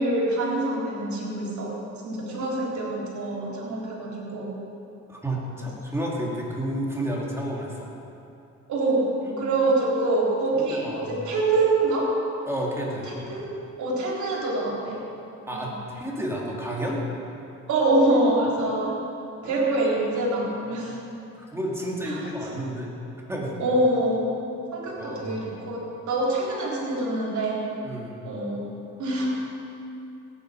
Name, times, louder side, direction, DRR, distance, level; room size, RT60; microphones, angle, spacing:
voice 1, 0.0-4.6 8.7-12.2 13.3-13.5 13.8-15.0 15.5-15.7 17.7-18.9 19.4-21.0 22.1-22.3 23.6-24.4 24.7-25.8 26.1-27.6 28.2-28.6 29.0-29.3, right 2 dB, 70° right, -3 dB, 3.8 m, -25 dB
voice 2, 5.1-7.9 9.2-9.6 10.5-11.2 12.5-13.2 15.5-17.0 19.4-19.9 21.5-22.9 23.2-23.6 25.0-25.6 27.8-28.2, right 1 dB, 10° right, -4 dB, 3.3 m, -31 dB
18.0 x 9.6 x 5.1 m, 2.7 s
cardioid pair, 90°, 30 cm